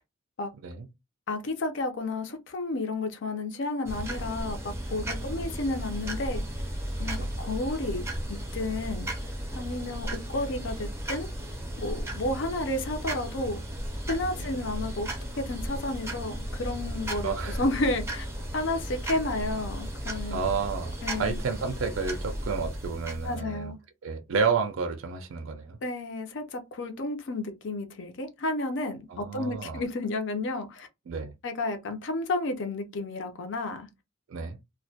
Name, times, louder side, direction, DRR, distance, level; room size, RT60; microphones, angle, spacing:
voice 1, 1.3-6.4 7.0-9.1 9.5-11.3 11.8-13.6 14.1-15.1 15.4-17.3 17.6-18.3 18.5-20.4 21.0-21.4 23.2-23.8 25.8-30.9 31.4-33.9, left 2 dB, 60° left, 0.5 m, -31 dB
sound 1, 3.9-23.4, right 1 dB, 15° right, 0.5 m, -35 dB
voice 2, 5.1-5.5 7.2-7.3 14.4-14.5 17.2-17.7 20.3-23.7 24.0-25.8 29.1-29.8 31.1-31.3 34.3-34.6, right 5 dB, 70° right, 0.4 m, -31 dB
2.2 x 2.1 x 2.6 m
head